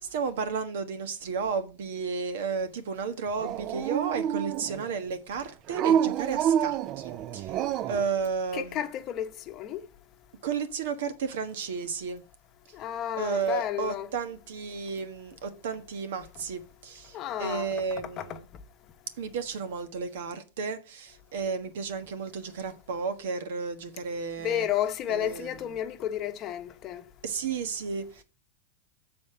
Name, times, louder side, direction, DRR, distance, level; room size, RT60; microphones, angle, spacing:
voice 1, 0.0-7.6 7.9-8.8 10.4-12.2 13.2-18.5 19.2-24.7 25.1-25.5 27.2-28.2, right 5 dB, 75° right, 1.3 m, -33 dB
Dog, 3.4-4.9 5.7-8.1, right 9 dB, 40° right, 0.4 m, -28 dB
voice 2, 8.5-9.8 12.7-14.1 17.1-17.7 18.2-18.4 24.4-27.1, left 11 dB, 35° left, 0.9 m, -32 dB
7.5 x 4.3 x 6.6 m
supercardioid pair, 145°, 0 cm